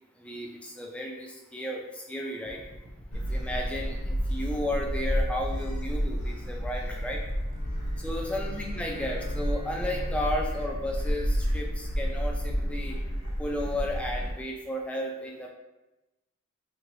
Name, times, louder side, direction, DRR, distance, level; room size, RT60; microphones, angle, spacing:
voice 1, 0.2-2.6 3.3-7.2 8.0-13.0 13.4-15.5, left 1 dB, 5° left, 0 dB, 0.4 m, -33 dB
sound 1, 2.4-10.3, equal, 90° right, 1.2 m, -48 dB
Gull seagull, 3.1-14.3, equal, 75° left, 1.0 m, -31 dB
sound 2, 7.4-11.9, left 3 dB, 55° left, 0.9 m, -48 dB
3.7 x 3.2 x 2.6 m, 1.0 s
head